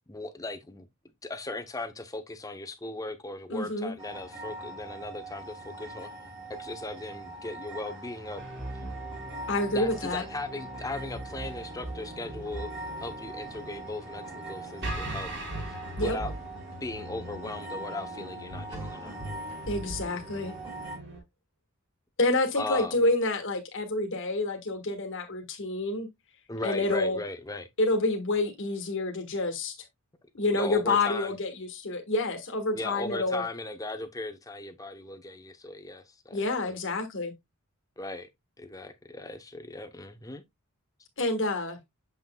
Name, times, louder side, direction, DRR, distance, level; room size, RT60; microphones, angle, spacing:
voice 1, 0.1-0.9 1.2-6.1 6.5-8.4 9.7-15.3 15.7-16.3 16.8-19.2 22.6-23.0 26.5-27.7 30.5-31.4 32.7-36.7 38.0-38.3 38.6-40.4, left 2 dB, 15° left, 0.7 m, -38 dB
voice 2, 3.5-3.9 9.5-10.2 16.0-16.2 19.7-20.5 22.2-26.1 26.6-27.2 27.8-29.7 30.3-33.4 36.3-37.3 41.2-41.8, left 2 dB, 55° left, 1.5 m, -28 dB
sound 1, 4.0-21.0, right 2 dB, 25° right, 3.3 m, -42 dB
sound 2, 8.4-21.2, right 1 dB, 50° right, 3.3 m, -40 dB
7.1 x 5.9 x 2.2 m
head